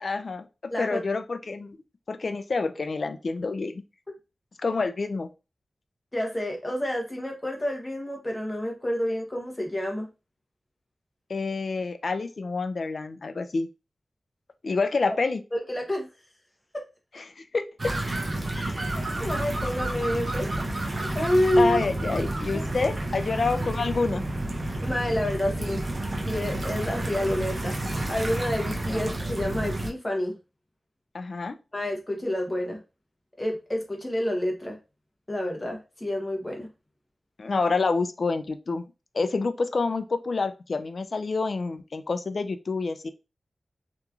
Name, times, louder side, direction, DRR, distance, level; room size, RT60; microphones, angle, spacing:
voice 1, 0.0-0.5 0.8-1.8 2.1-3.8 4.6-5.3 11.3-13.7 14.6-15.4 17.1-18.2 21.6-24.2 28.9-29.0 31.1-31.6 37.4-38.8 39.1-43.1, left 4 dB, 60° left, 9 dB, 0.3 m, -28 dB
voice 2, 6.1-10.1 15.5-16.1 16.7-16.8 18.5-20.5 20.8-21.8 22.5-22.6 24.8-25.8 26.2-27.8 28.1-30.4 31.7-32.8 33.4-34.8 35.3-36.7, left 1 dB, 20° left, 1 dB, 0.8 m, -28 dB
sound 1, 17.8-29.9, right 1 dB, 40° right, 0.5 m, -30 dB
2.9 x 2.4 x 2.3 m, 0.29 s
wide cardioid pair, 105°, 0 cm